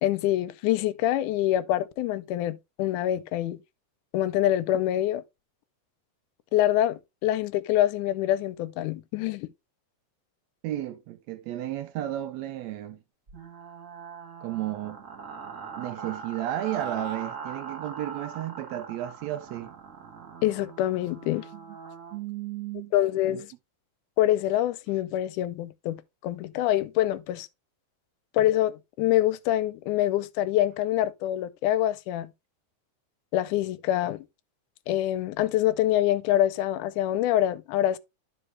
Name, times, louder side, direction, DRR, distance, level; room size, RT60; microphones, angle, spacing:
voice 1, 0.0-3.6 4.1-5.2 6.5-9.5 20.4-21.5 22.9-23.5 24.2-27.5 28.3-32.3 33.3-34.3 34.9-38.0, left 13 dB, 85° left, 2.1 m, -25 dB
voice 2, 10.6-13.0 14.4-15.0 15.8-19.7 21.5-21.6 22.1-22.9 23.3-23.4, right 13 dB, 75° right, 1.7 m, -33 dB
sound 1, 13.3-22.2, right 6 dB, 35° right, 1.3 m, -41 dB
11.0 x 5.0 x 3.1 m
omnidirectional pair, 3.5 m